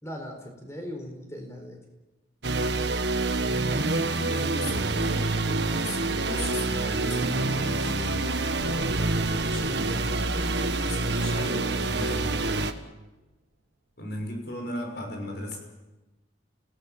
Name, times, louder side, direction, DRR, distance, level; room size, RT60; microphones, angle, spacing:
voice 1, 0.0-1.8 9.6-9.9, equal, 15° left, 3 dB, 4.5 m, -39 dB
sound 1, 2.4-12.7, right 2 dB, 60° right, 1.5 m, -27 dB
voice 2, 3.9-8.2 9.3-9.9 10.8-12.5 14.0-15.6, left 1 dB, 55° left, 2 dB, 6.3 m, -36 dB
sound 2, 8.6-12.7, right 1 dB, 80° right, 2.0 m, -43 dB
30.0 x 18.0 x 7.5 m, 1.1 s
head